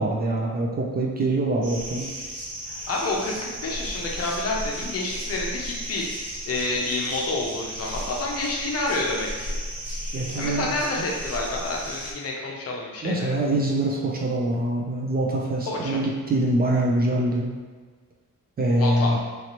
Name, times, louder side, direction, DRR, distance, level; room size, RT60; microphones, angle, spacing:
voice 1, 0.0-2.1 10.1-10.6 13.0-17.5 18.6-19.2, right 1 dB, 30° right, -1 dB, 0.4 m, -24 dB
sound 1, 1.6-12.1, equal, 90° right, 1.0 m, -34 dB
voice 2, 2.6-9.6 10.3-13.4 15.7-16.0 18.8-19.2, left 2 dB, 50° left, -1 dB, 0.6 m, -29 dB
3.1 x 2.8 x 2.9 m, 1.4 s
wide cardioid pair, 150°, 31 cm